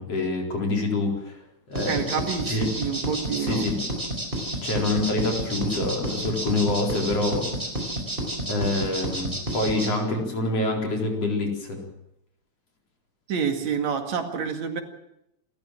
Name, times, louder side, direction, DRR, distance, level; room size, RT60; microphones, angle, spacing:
voice 1, 0.0-1.4 1.7-2.1 2.5-2.7 3.4-3.8 4.6-7.5 8.5-11.9, left 2 dB, 55° left, 1 dB, 5.2 m, -26 dB
sound 1, 1.7-9.9, right 1 dB, 15° right, 5.1 m, -30 dB
voice 2, 1.9-3.7 13.3-14.8, right 6 dB, 70° right, 5 dB, 3.4 m, -28 dB
28.0 x 14.0 x 7.5 m, 0.83 s
omnidirectional pair, 3.3 m